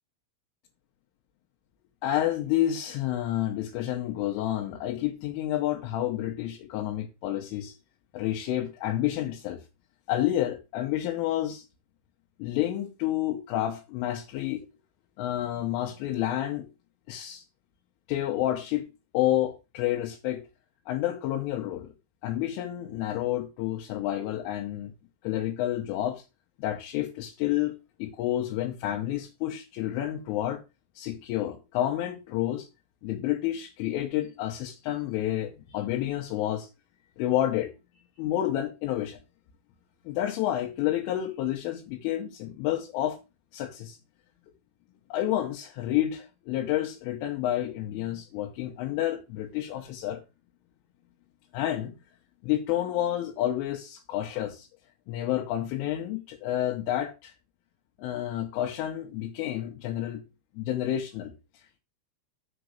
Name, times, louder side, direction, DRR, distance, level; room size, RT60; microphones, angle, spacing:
voice 1, 2.0-7.8 8.1-9.6 10.1-11.6 12.4-14.7 15.2-16.7 17.1-17.4 18.1-18.9 19.1-20.4 20.9-21.9 22.2-24.9 25.2-26.2 26.6-30.6 31.0-32.7 33.0-36.7 37.2-39.2 40.1-43.2 43.5-44.0 45.1-50.2 51.5-52.0 52.4-54.7 55.1-57.3 58.0-60.2 60.6-61.3, left 13 dB, 80° left, 3.4 m, -29 dB
7.0 x 5.2 x 6.4 m
omnidirectional pair, 5.9 m